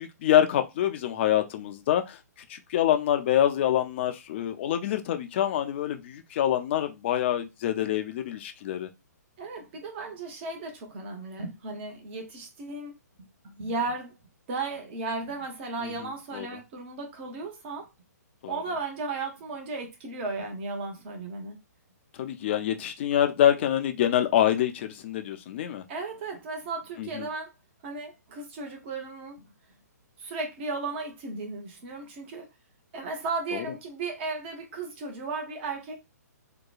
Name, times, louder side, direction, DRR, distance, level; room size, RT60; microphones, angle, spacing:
voice 1, 0.0-2.2 2.5-8.9 15.8-16.5 18.4-18.5 22.2-25.8 27.0-27.3 33.5-33.6, left 11 dB, 40° left, 0.4 m, -26 dB
voice 2, 9.4-12.9 13.4-14.1 14.5-17.9 18.5-21.6 25.9-27.5 27.8-29.5 30.2-32.5 32.9-36.0, right 3 dB, 40° right, 0.9 m, -35 dB
2.8 x 2.2 x 2.4 m
figure-of-eight pair, 125°, 9 cm